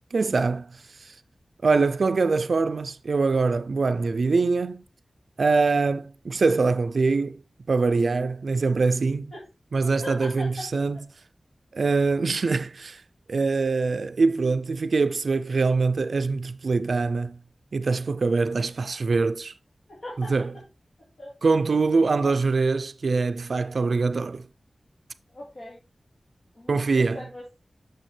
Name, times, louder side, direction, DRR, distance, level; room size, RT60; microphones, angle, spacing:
voice 1, 0.1-1.1 1.6-4.8 5.4-7.4 7.7-9.3 9.7-11.0 11.7-13.0 13.3-17.4 17.7-19.5 20.2-20.5 21.4-24.4 26.7-27.2, right 4 dB, 80° right, 0.3 m, -23 dB
voice 2, 10.0-10.6 19.9-20.3 21.2-21.3 25.3-25.8 26.5-27.6, left 1 dB, 75° left, 2.4 m, -39 dB
6.4 x 6.2 x 3.2 m
wide cardioid pair, 65°, 0 cm